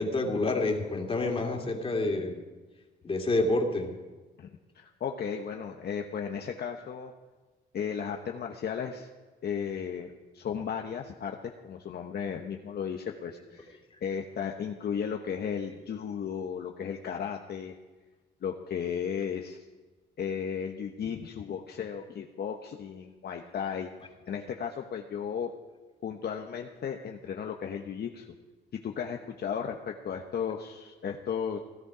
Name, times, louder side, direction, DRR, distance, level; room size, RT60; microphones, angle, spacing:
voice 1, 0.0-2.4 3.0-4.0, left 2 dB, 30° left, 1 dB, 2.6 m, -28 dB
voice 2, 4.7-7.1 7.7-9.1 9.4-17.7 18.4-19.6 20.2-23.9 24.3-25.5 26.0-28.3 28.7-31.6, left 7 dB, 55° left, 3 dB, 1.0 m, -35 dB
16.0 x 12.5 x 5.0 m, 1.3 s
cardioid pair, 90°, 20 cm